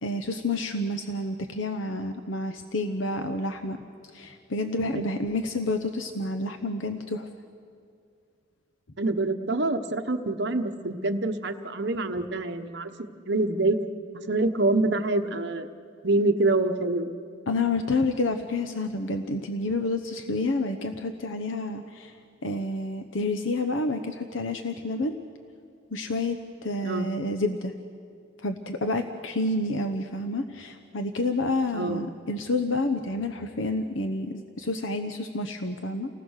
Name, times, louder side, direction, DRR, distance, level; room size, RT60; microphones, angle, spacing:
voice 1, 0.0-3.8 4.1-7.3 17.5-22.1 22.4-25.2 25.9-27.7 28.4-36.1, left 2 dB, 75° left, 7 dB, 1.0 m, -29 dB
voice 2, 9.0-12.9 13.3-13.8 14.1-15.7 16.0-17.1 26.8-27.1 31.7-32.0, right 2 dB, 60° right, 6 dB, 1.1 m, -26 dB
30.0 x 19.0 x 6.6 m, 2.3 s
head